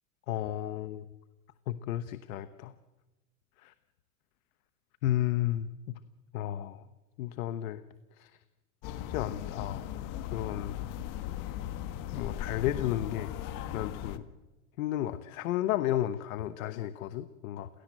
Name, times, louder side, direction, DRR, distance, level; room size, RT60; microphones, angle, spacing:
voice 1, 0.3-1.1 1.7-2.7 3.6-3.7 5.0-6.0 6.3-6.9 7.2-7.8 8.1-8.3 9.1-9.9 10.3-10.8 12.1-13.3 13.7-14.2 14.8-17.7, left 13 dB, 80° left, 12 dB, 1.1 m, -33 dB
sound 1, 8.8-14.2, left 11 dB, 50° left, 1.7 m, -38 dB
29.0 x 17.0 x 7.7 m, 1.1 s
supercardioid pair, 120°, 41 cm